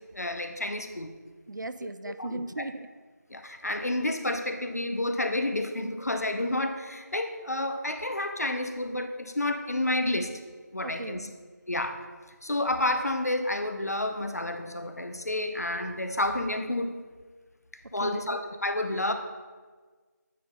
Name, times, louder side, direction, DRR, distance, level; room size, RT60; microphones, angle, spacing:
voice 1, 0.1-1.1 1.8-1.9 2.2-2.4 3.3-10.3 10.7-11.3 11.7-12.0 12.4-16.9 17.9-19.1, left 1 dB, 55° left, 7 dB, 0.6 m, -30 dB
voice 2, 1.5-2.9 10.8-11.4 17.8-18.4, right 2 dB, 80° right, 13 dB, 0.4 m, -38 dB
9.3 x 3.9 x 3.7 m, 1.4 s
figure-of-eight pair, 175°, 10 cm